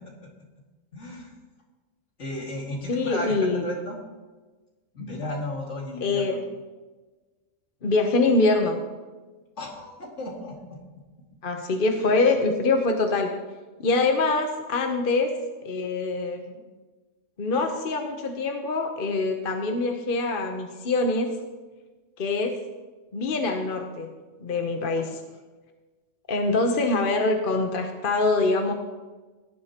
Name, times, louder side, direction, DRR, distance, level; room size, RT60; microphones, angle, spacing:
voice 1, 0.9-1.3 2.2-4.0 4.9-6.4 9.6-10.8 12.1-12.2, left 1 dB, 70° left, -1 dB, 2.5 m, -34 dB
voice 2, 2.9-3.7 6.0-6.4 7.8-8.8 11.4-13.3 13.8-15.3 15.6-16.6 17.4-21.3 22.2-22.6 23.1-24.1 24.4-25.2 26.3-28.7, left 3 dB, 45° left, 4 dB, 1.1 m, -24 dB
17.5 x 11.0 x 3.0 m, 1.3 s
omnidirectional pair, 1.3 m